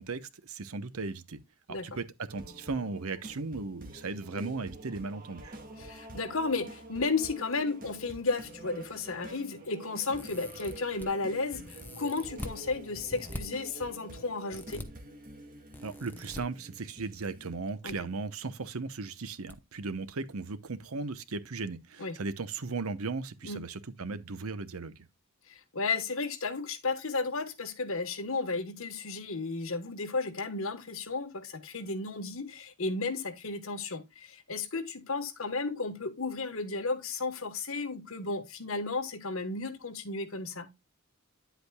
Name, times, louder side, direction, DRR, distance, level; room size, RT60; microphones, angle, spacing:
voice 1, 0.0-1.4 1.7-5.6 15.8-24.9, right 4 dB, 80° right, 0.9 m, -37 dB
sound 1, 2.3-17.5, right 1 dB, 40° right, 2.1 m, -47 dB
voice 2, 5.8-14.9 17.8-18.0 22.0-22.2 23.4-23.6 25.5-40.7, left 3 dB, 65° left, 1.3 m, -33 dB
sound 2, 10.1-11.1 11.6-12.6 13.1-13.4 14.5-14.9 15.7-16.4 17.5-17.9 18.2-18.3 19.5-19.6 20.0-20.1, left 1 dB, 10° left, 0.9 m, -43 dB
10.0 x 8.1 x 2.3 m
head